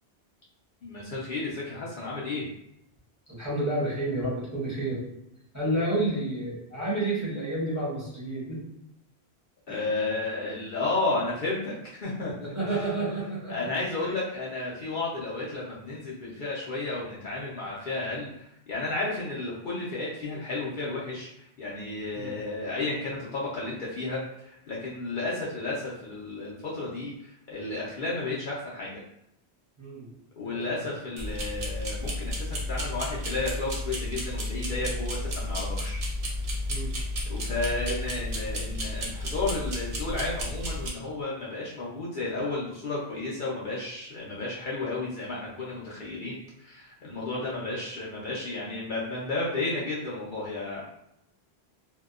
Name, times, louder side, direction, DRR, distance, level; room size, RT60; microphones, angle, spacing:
voice 1, 0.8-2.5 9.7-12.8 13.5-29.0 30.4-36.0 37.3-50.8, left 2 dB, 55° left, -6 dB, 0.7 m, -32 dB
voice 2, 3.3-5.0 5.5-8.6 9.7-9.9 12.4-13.7 14.0-14.1 22.1-22.4 29.8-30.1 30.4-30.8 36.7-37.0, right 1 dB, 15° right, -8 dB, 0.8 m, -30 dB
sound 1, 31.2-40.9, left 1 dB, 50° right, 0.4 m, -32 dB
2.7 x 2.1 x 2.3 m, 0.79 s
omnidirectional pair, 1.1 m